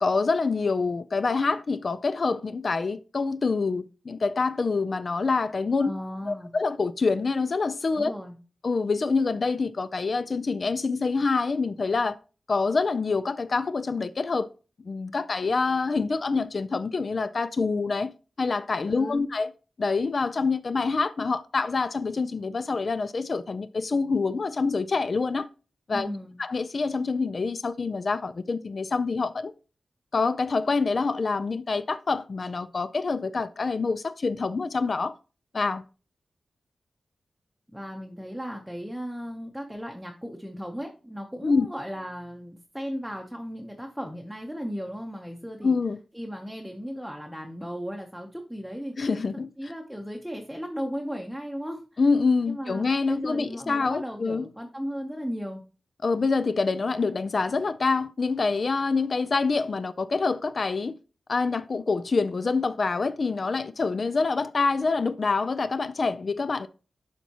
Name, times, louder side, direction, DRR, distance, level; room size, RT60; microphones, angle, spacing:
voice 1, 0.0-5.9 6.3-8.1 8.6-12.2 12.5-14.5 14.8-18.1 18.4-19.5 19.8-25.5 25.9-26.1 26.4-29.5 30.1-35.1 35.5-35.8 41.4-41.7 45.6-46.0 49.0-49.5 52.0-54.5 56.0-60.9 61.3-66.7, left 4 dB, 40° left, 0.3 m, -26 dB
voice 2, 5.8-6.5 7.9-8.4 18.8-19.3 25.9-26.4 37.7-45.7 46.1-52.0 52.5-55.6, equal, ahead, 0.8 m, -36 dB
11.5 x 4.1 x 2.9 m
wide cardioid pair, 175°, 0 cm